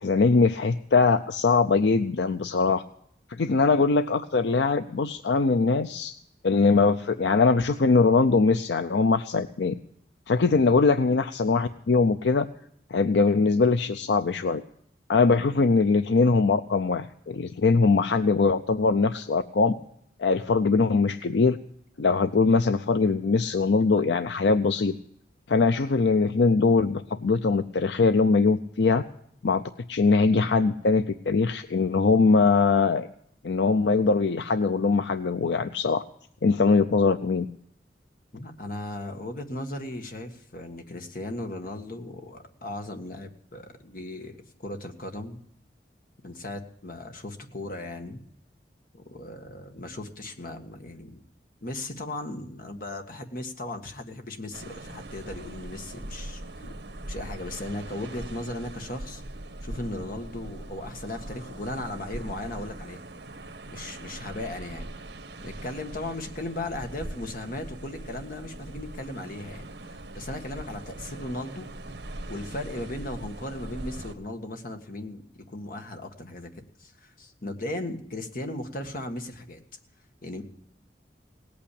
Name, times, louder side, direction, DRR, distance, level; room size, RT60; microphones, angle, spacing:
voice 1, 0.0-2.8 3.3-6.1 6.4-9.7 10.3-12.5 12.9-14.6 15.1-19.8 20.2-21.6 22.0-24.9 25.5-29.0 29.4-29.6 29.9-33.1 33.4-36.0 36.4-37.5, left 4 dB, 75° left, 11 dB, 0.5 m, -22 dB
voice 2, 38.3-45.4 46.2-48.2 48.9-51.2 51.6-56.4 57.1-59.2 59.6-63.0 63.7-64.9 65.4-71.7 72.3-75.2 75.5-79.6 80.2-80.4, left 1 dB, 50° left, 5 dB, 1.7 m, -37 dB
sound 1, 54.5-74.1, right 1 dB, 70° right, 1.4 m, -41 dB
18.0 x 8.6 x 8.5 m, 0.70 s
head